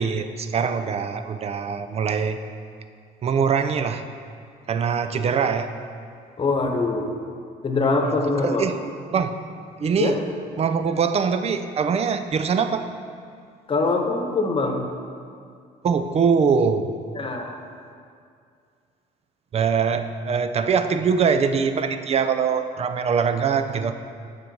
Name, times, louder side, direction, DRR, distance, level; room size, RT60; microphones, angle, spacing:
voice 1, 0.0-2.4 3.2-4.0 4.7-5.7 8.4-8.8 9.1-9.4 9.8-10.2 10.6-12.9 15.8-16.9 19.5-23.9, right 6 dB, 35° right, 9 dB, 0.5 m, -23 dB
voice 2, 6.4-7.1 7.6-8.7 10.0-10.2 13.7-14.9 17.1-17.6, left 3 dB, 30° left, 3 dB, 1.1 m, -23 dB
7.4 x 6.4 x 5.3 m, 2.3 s
cardioid pair, 110°, 17 cm